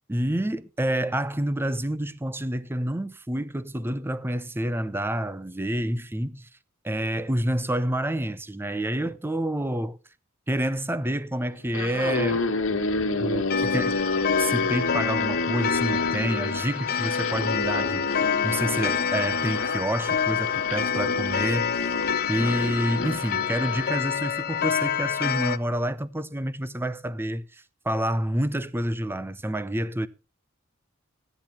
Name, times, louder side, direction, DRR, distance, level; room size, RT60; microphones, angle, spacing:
voice 1, 0.1-6.5 6.8-10.0 10.5-12.8 13.2-14.0 14.4-22.0 22.3-30.1, right 1 dB, 10° right, 0.6 m, -28 dB
sound 1, 11.6-23.9, left 2 dB, 80° left, 1.8 m, -30 dB
Clock, 13.5-25.6, left 8 dB, 50° left, 0.7 m, -27 dB
13.5 x 10.5 x 4.3 m
head